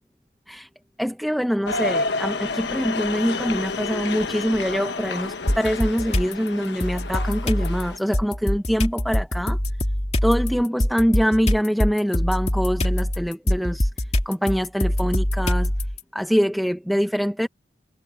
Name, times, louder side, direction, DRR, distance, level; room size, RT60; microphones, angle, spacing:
voice 1, 1.0-9.6 10.2-15.7 16.1-17.5, equal, ahead, 0.9 m, -24 dB
sound 1, 1.6-8.0, left 3 dB, 70° left, 1.2 m, -30 dB
sound 2, 5.5-6.3 6.8-16.0, left 1 dB, 35° left, 2.4 m, -24 dB
head